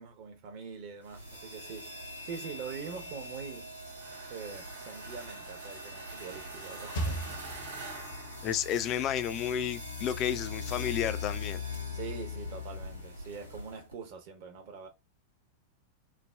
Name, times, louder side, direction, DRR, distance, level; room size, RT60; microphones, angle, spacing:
voice 1, 0.0-1.9 2.2-3.7 4.3-7.8 11.9-14.9, right 6 dB, 45° right, 0.6 m, -44 dB
sound 1, 1.1-13.9, left 3 dB, 85° right, 0.8 m, -42 dB
sound 2, 3.9-9.1, right 4 dB, 70° right, 1.1 m, -47 dB
sound 3, 6.2-8.4, right 1 dB, 60° left, 0.8 m, -38 dB
voice 2, 8.4-11.6, left 10 dB, 35° left, 0.4 m, -31 dB
3.2 x 2.1 x 2.3 m
figure-of-eight pair, 90°, 0 cm